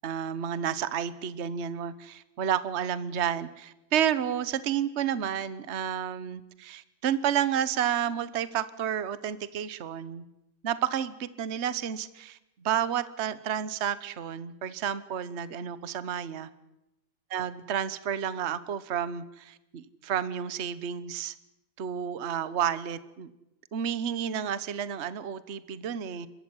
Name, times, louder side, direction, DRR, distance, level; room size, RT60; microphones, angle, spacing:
voice 1, 0.0-10.2 10.6-16.5 17.3-21.3 21.8-23.3 23.7-26.3, right 9 dB, 45° right, 15 dB, 1.2 m, -31 dB
29.0 x 14.0 x 9.8 m, 0.92 s
omnidirectional pair, 2.0 m